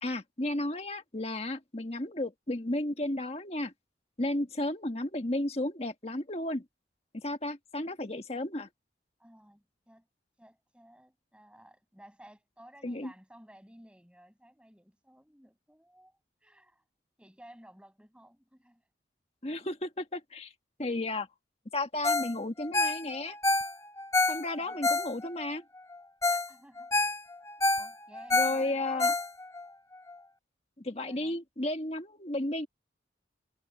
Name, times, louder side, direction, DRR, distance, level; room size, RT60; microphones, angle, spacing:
voice 1, 0.0-3.7 4.2-6.6 7.1-8.7 12.8-13.1 19.4-20.5 20.8-21.3 21.7-23.4 24.3-25.6 28.3-29.1 30.8-32.7, left 1 dB, 35° left, 1.7 m, -33 dB
voice 2, 9.2-10.1 10.4-16.8 17.2-18.8 24.5-24.9 26.3-26.9 27.7-29.1 31.0-31.4, right 1 dB, 5° right, 8.0 m, -55 dB
Ringtone, 22.0-22.3 22.6-25.5 25.9-26.0 26.2-26.5 26.8-29.6 30.1-30.2, left 2 dB, 15° left, 1.4 m, -28 dB
head